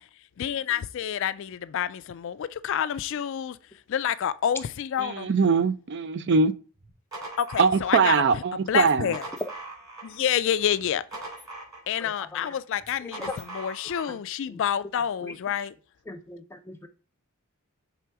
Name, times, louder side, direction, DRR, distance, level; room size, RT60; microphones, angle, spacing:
voice 1, 0.4-3.6 3.9-5.3 7.4-9.3 10.0-11.1 11.9-15.7, left 9 dB, 60° left, 0.3 m, -28 dB
voice 2, 5.0-6.5 7.6-9.1, right 5 dB, 50° right, 0.4 m, -22 dB
sound 1, 6.8-8.3 8.8-10.3 10.6-12.1 12.8-14.2, right 2 dB, 15° right, 3.0 m, -41 dB
voice 3, 12.0-12.6 13.0-13.4 14.1-14.2 14.5-14.6 15.2-15.3 16.1-16.9, left 3 dB, 10° left, 0.6 m, -40 dB
6.0 x 3.5 x 4.6 m
head